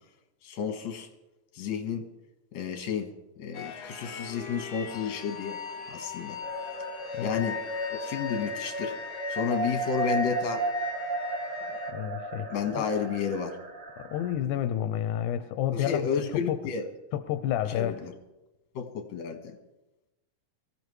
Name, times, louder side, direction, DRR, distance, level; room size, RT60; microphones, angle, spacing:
voice 1, 0.4-1.1 1.5-2.1 2.5-3.1 3.4-5.6 5.9-6.4 7.2-7.6 7.9-9.0 9.3-10.7 11.7-11.8 12.5-13.6 15.7-16.8 17.7-18.1 18.8-19.6, left 6 dB, 70° left, 5 dB, 2.6 m, -31 dB
sound 1, 3.5-11.9, left 6 dB, 50° left, 1.7 m, -39 dB
sound 2, 6.4-14.3, right 2 dB, 60° right, 0.8 m, -34 dB
voice 2, 7.1-7.5 11.9-12.5 12.7-12.9 14.0-16.1 16.5-16.6 17.1-18.0, left 10 dB, 85° left, 10 dB, 2.1 m, -30 dB
23.5 x 15.5 x 3.2 m, 1.0 s
omnidirectional pair, 3.5 m